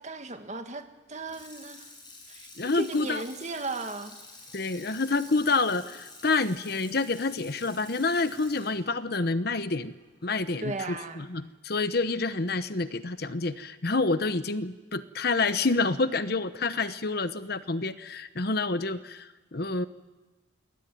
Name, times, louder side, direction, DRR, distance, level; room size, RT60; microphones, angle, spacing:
voice 1, 0.0-1.9 2.3-4.2 10.6-11.3, right 3 dB, 35° right, 7 dB, 1.8 m, -36 dB
Water tap faucet / Sink (filling or washing), 1.1-10.3 10.7-10.8, left 3 dB, 25° left, 7.5 m, -49 dB
voice 2, 2.6-3.2 4.5-9.9 10.2-19.9, left 3 dB, 55° left, 13 dB, 1.0 m, -28 dB
27.0 x 21.0 x 9.3 m, 1.2 s
head